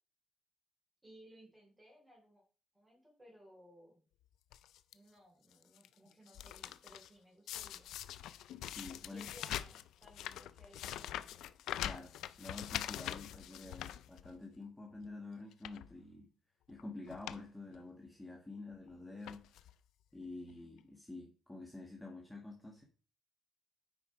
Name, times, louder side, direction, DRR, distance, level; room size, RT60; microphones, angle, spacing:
voice 1, 1.0-2.4 2.7-3.9 4.9-7.9 9.1-11.4, equal, 15° right, -5 dB, 3.8 m, -60 dB
sound 1, 4.5-4.9 5.5-5.9 6.1-7.1 7.5-14.6 15.0-15.1 15.5-15.9 16.7-16.8 17.1-17.4 17.7-17.8 18.7-18.9 19.2-19.7 20.5-20.6 20.8-20.9, left 12 dB, 85° left, 0.5 m, -44 dB
voice 2, 8.7-9.2 11.8-12.1 12.4-16.3 16.7-19.6 20.1-22.8, left 2 dB, 10° left, -1 dB, 1.8 m, -48 dB
9.2 x 5.1 x 4.6 m, 0.37 s
cardioid pair, 115°, 0 cm